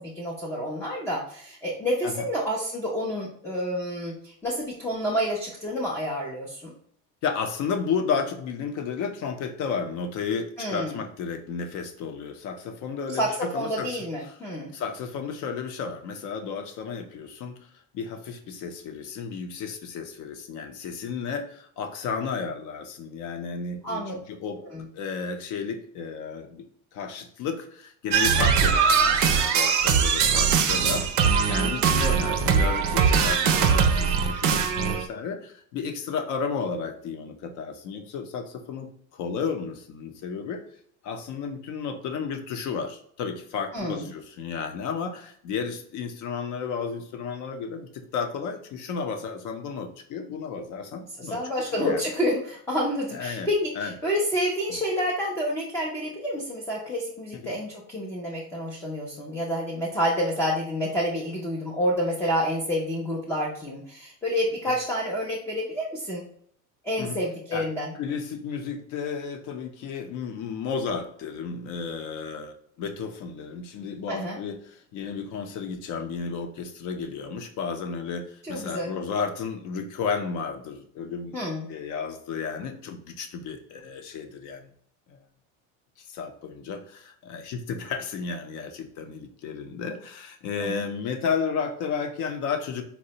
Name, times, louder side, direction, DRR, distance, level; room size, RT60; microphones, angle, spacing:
voice 1, 0.2-6.7 10.6-11.0 13.1-14.7 23.8-24.1 24.6-24.9 43.7-44.1 51.2-66.2 66.8-67.9 74.1-74.4 78.4-78.9 81.3-81.6 90.6-90.8, equal, 10° left, -4 dB, 0.3 m, -29 dB
voice 2, 7.2-14.0 14.2-14.4 14.7-17.6 17.9-24.6 24.9-26.7 26.9-40.6 41.0-52.0 53.1-53.5 53.8-53.9 54.7-54.8 57.3-57.4 67.0-67.2 67.5-67.7 67.9-81.4 81.7-84.7 85.1-85.2 86.0-92.8, left 5 dB, 55° left, 6 dB, 0.6 m, -33 dB
sound 1, 28.1-35.1, right 6 dB, 55° right, 0.5 m, -21 dB
4.1 x 2.0 x 2.7 m, 0.62 s
cardioid pair, 150°, 36 cm